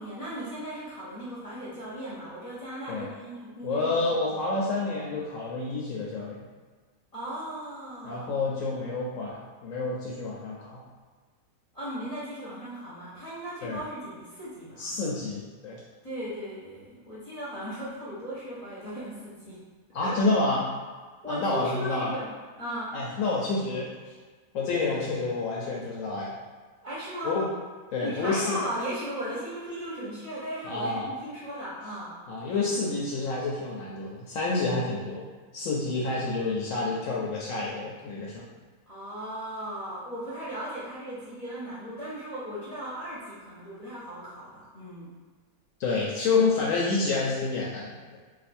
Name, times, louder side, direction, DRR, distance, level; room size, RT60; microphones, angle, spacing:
voice 1, 0.0-4.0 4.3-4.7 7.1-8.4 11.7-15.1 16.0-19.6 20.0-20.2 21.2-22.3 22.6-23.0 26.8-27.4 28.0-32.1 38.9-45.1, right 1 dB, 35° left, -9 dB, 0.7 m, -37 dB
voice 2, 3.6-6.4 8.0-10.8 13.6-13.8 14.8-15.8 19.9-20.6 21.3-22.1 22.9-23.9 24.5-26.4 27.2-27.5 27.9-28.6 30.6-31.1 32.3-35.2 35.5-38.5 45.8-48.0, left 3 dB, 70° left, -4 dB, 0.9 m, -28 dB
2.6 x 2.5 x 4.1 m, 1.4 s
omnidirectional pair, 1.5 m